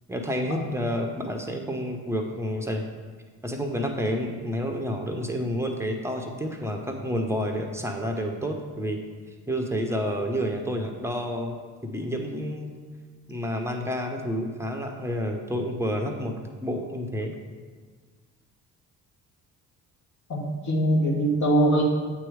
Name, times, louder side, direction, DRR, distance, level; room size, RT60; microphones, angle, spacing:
voice 1, 0.1-2.8 3.4-9.0 9.5-12.7 13.3-16.3 16.6-17.3, equal, 5° right, 3 dB, 0.9 m, -29 dB
voice 2, 20.3-21.8, right 1 dB, 45° left, -3 dB, 1.7 m, -22 dB
8.2 x 3.1 x 4.8 m, 1.5 s
hypercardioid pair, 50°, 42 cm